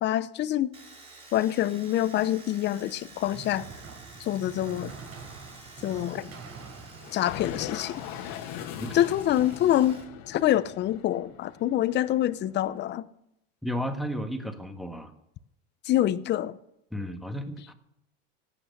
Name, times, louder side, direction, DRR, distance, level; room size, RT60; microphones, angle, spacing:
voice 1, 0.0-0.7 1.3-3.6 4.2-4.9 5.8-6.3 7.1-7.9 8.2-8.4 8.9-10.0 10.3-13.0 15.8-16.6, left 12 dB, 35° left, 0.7 m, -26 dB
Domestic sounds home sounds, 0.7-10.1 10.3-11.2, right 2 dB, 20° right, 3.8 m, -50 dB
sound 1, 2.8-9.0, right 5 dB, 50° right, 4.6 m, -46 dB
sound 2, 7.0-12.7, left 10 dB, 60° left, 1.7 m, -40 dB
voice 2, 13.6-15.1 16.9-17.7, equal, ahead, 1.5 m, -33 dB
17.5 x 8.9 x 6.5 m
supercardioid pair, 125°, 31 cm